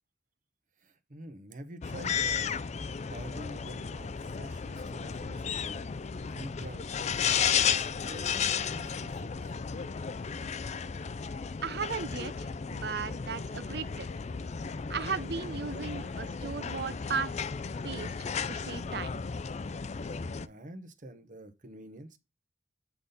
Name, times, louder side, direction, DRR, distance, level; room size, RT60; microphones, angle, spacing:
voice 1, 0.8-2.5 3.1-7.3 8.0-9.6 20.4-22.2, right 1 dB, 50° right, 1.1 m, -47 dB
sound 1, 1.8-20.5, left 6 dB, 40° left, 0.4 m, -34 dB
voice 2, 11.6-14.1 14.9-17.3 17.8-19.2, right 5 dB, 65° right, 0.7 m, -36 dB
8.4 x 4.1 x 5.4 m
head